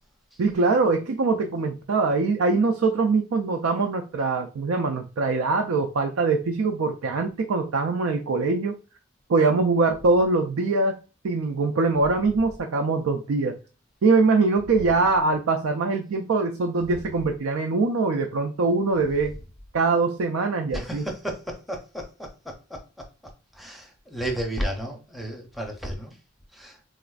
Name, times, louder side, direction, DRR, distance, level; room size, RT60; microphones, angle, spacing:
voice 1, 0.4-8.8 9.3-11.0 11.2-13.6 14.0-19.4 19.7-21.0, right 3 dB, 85° right, 0.4 m, -23 dB
voice 2, 20.7-22.5 23.5-26.1 26.5-26.8, right 1 dB, ahead, 0.6 m, -32 dB
4.0 x 2.4 x 2.3 m
head